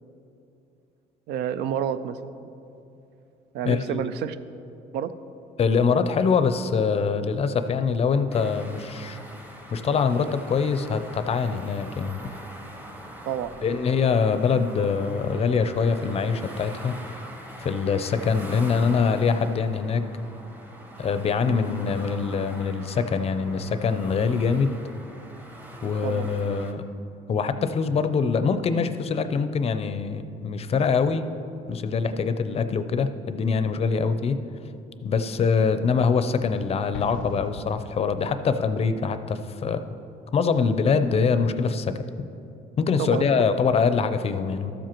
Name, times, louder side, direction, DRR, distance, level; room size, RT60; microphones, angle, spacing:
voice 1, 1.3-2.5 3.5-4.4 4.9-5.1 13.3-13.6 21.4-21.6 26.0-26.3 43.0-43.3, right 9 dB, 80° right, 13 dB, 0.4 m, -29 dB
voice 2, 3.6-4.1 5.6-9.2 9.7-12.2 13.6-17.0 17.6-20.1 21.0-24.7 25.8-26.8 27.3-31.3 31.7-34.4 35.0-39.8 40.3-41.9 42.8-44.7, left 5 dB, 35° left, 10 dB, 0.5 m, -24 dB
sound 1, 8.3-26.7, right 1 dB, 10° right, 0.8 m, -43 dB
Explosion, 36.9-38.7, left 7 dB, 90° left, 0.5 m, -39 dB
13.5 x 7.6 x 3.0 m, 2.7 s
cardioid pair, 110°, 17 cm